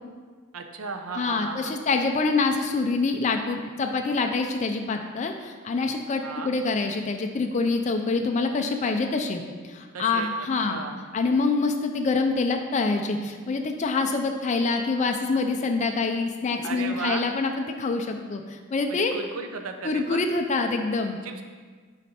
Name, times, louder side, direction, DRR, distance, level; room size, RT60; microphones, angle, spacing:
voice 1, 0.5-1.8 6.2-6.5 9.9-10.3 10.7-11.0 16.6-17.2 18.9-20.2 21.2-21.4, right 4 dB, 85° right, 5 dB, 0.6 m, -35 dB
voice 2, 1.2-10.8 11.1-19.1 19.8-21.2, left 3 dB, 35° left, 4 dB, 0.3 m, -26 dB
6.5 x 4.2 x 4.2 m, 1.5 s
head